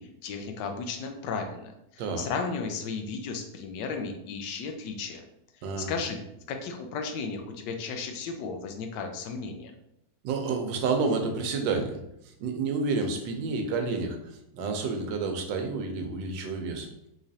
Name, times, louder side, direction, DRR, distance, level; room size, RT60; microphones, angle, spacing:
voice 1, 0.0-5.2 5.8-9.7, left 5 dB, 75° left, 5 dB, 1.2 m, -35 dB
voice 2, 10.2-12.0 12.4-14.2 14.5-16.9, right 4 dB, 85° right, 4 dB, 1.3 m, -29 dB
3.7 x 3.1 x 2.7 m, 0.80 s
omnidirectional pair, 2.0 m